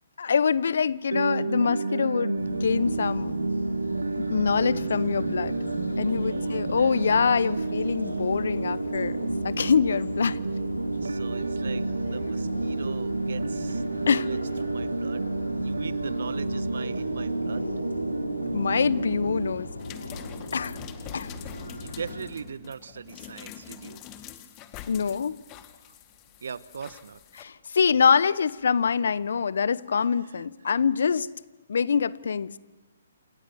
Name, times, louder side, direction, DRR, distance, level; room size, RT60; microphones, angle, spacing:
voice 1, 0.2-3.4 4.2-5.5 6.0-10.4 14.1-14.3 18.5-19.7 20.5-20.8 21.1-21.3 24.9-25.4 27.4-31.3 31.7-32.6, left 6 dB, 65° left, 19 dB, 1.0 m, -25 dB
sound 1, 1.1-19.5, right 3 dB, 80° right, 1.5 m, -30 dB
sound 2, 2.4-22.3, left 1 dB, 90° left, 3.9 m, -37 dB
voice 2, 6.0-7.0 11.0-15.3 15.6-17.7 21.0-21.3 21.8-24.0 26.4-27.2 30.0-30.5, right 6 dB, 65° right, 17 dB, 1.2 m, -40 dB
sound 3, 19.8-27.4 28.5-28.6, left 11 dB, 25° left, 2.0 m, -45 dB
28.5 x 28.0 x 7.1 m, 1.1 s
figure-of-eight pair, 135°, 0 cm